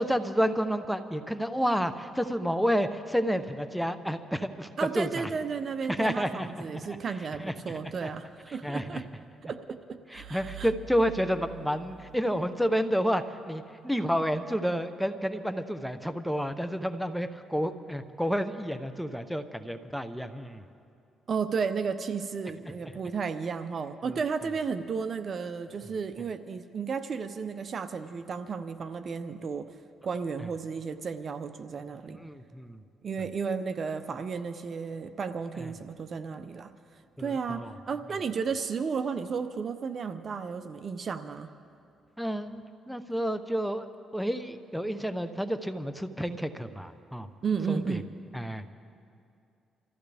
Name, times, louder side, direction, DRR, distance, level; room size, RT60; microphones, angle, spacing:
voice 1, 0.0-5.3 5.9-7.0 7.4-7.5 7.8-8.1 8.6-9.0 10.1-20.6 32.1-32.8 35.6-35.7 37.2-37.7 42.2-43.9 44.1-47.3 47.7-48.0 48.3-48.6, equal, ahead, 9 dB, 0.9 m, -30 dB
voice 2, 4.8-9.0 9.4-10.7 21.3-29.7 30.0-32.2 33.0-36.7 37.2-41.5 47.4-48.0, right 5 dB, 50° right, 10 dB, 0.7 m, -33 dB
sound 1, 10.1-12.8, right 6 dB, 75° right, 1.1 m, -46 dB
27.0 x 14.5 x 3.5 m, 2.5 s
cardioid pair, 75°, 0 cm